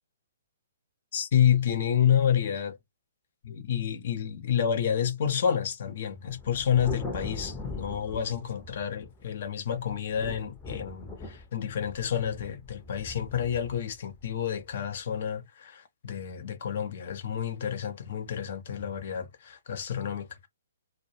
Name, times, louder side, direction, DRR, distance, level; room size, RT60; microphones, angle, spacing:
voice 1, 1.1-2.8 3.4-20.5, left 9 dB, 50° left, 0.6 m, -29 dB
Thunder, 6.3-9.4 9.8-15.2, left 2 dB, 15° left, 0.7 m, -41 dB
2.2 x 2.1 x 2.9 m
figure-of-eight pair, 125°, 0 cm